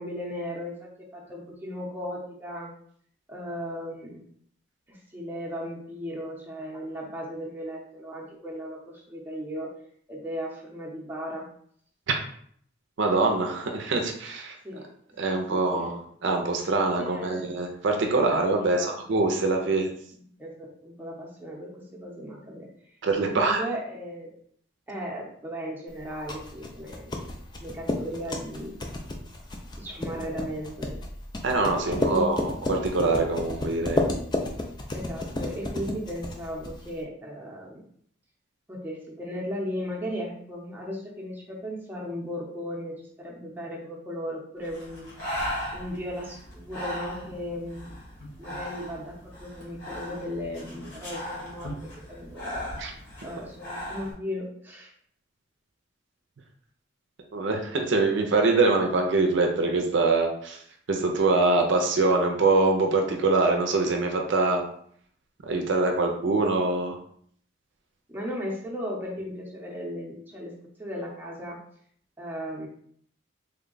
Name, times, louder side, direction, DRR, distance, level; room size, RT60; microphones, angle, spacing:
voice 1, 0.0-2.7 3.3-4.2 4.9-9.7 10.1-11.4 14.6-14.9 15.3-15.9 17.0-17.4 18.2-19.0 19.6-19.9 20.1-22.7 23.2-24.3 24.9-27.2 27.6-28.7 29.8-31.0 31.8-32.5 34.9-37.8 38.7-45.2 45.7-47.8 48.4-51.7 52.1-52.7 53.2-54.9 68.1-70.5 70.8-71.6 72.2-72.7, equal, 10° right, -4 dB, 0.7 m, -36 dB
voice 2, 13.0-14.6 15.2-19.9 23.0-23.6 31.4-34.0 52.8-52.9 57.3-60.6 60.9-64.6 65.4-67.0, right 3 dB, 65° right, 3 dB, 0.5 m, -24 dB
sound 1, 26.0-37.0, left 2 dB, 20° left, 0.4 m, -32 dB
Breathing, 44.6-54.1, equal, 55° left, 1.3 m, -37 dB
3.4 x 2.2 x 3.8 m, 0.63 s
head